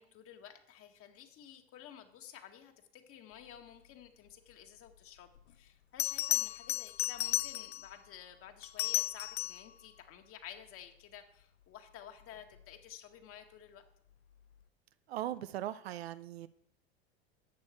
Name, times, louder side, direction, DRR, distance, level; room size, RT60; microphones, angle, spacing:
voice 1, 0.0-13.8, left 9 dB, 45° left, 1.9 m, -52 dB
Bell, 5.4-5.5 6.0-7.9 8.6-9.7 12.4-12.6, left 14 dB, 80° left, 0.5 m, -34 dB
voice 2, 15.1-16.5, right 12 dB, 75° right, 0.8 m, -39 dB
13.5 x 8.9 x 4.4 m
hypercardioid pair, 80°, 32 cm